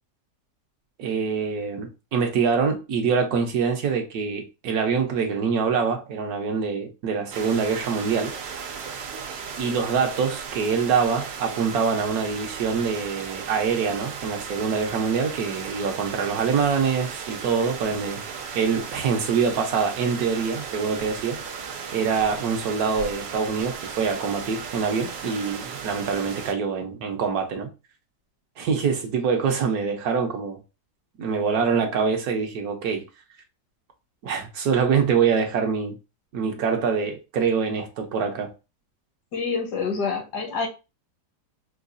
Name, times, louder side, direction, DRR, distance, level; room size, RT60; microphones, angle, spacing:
voice 1, 1.0-8.3 9.6-18.2 18.5-21.4 21.9-27.7 28.6-30.6 31.2-33.0 34.2-35.9 36.3-38.5, right 6 dB, 70° right, 1.1 m, -25 dB
sound 1, 7.3-26.5, right 6 dB, 90° right, 1.4 m, -36 dB
voice 2, 39.3-40.7, left 5 dB, 75° left, 1.5 m, -27 dB
4.6 x 2.3 x 2.5 m
omnidirectional pair, 1.8 m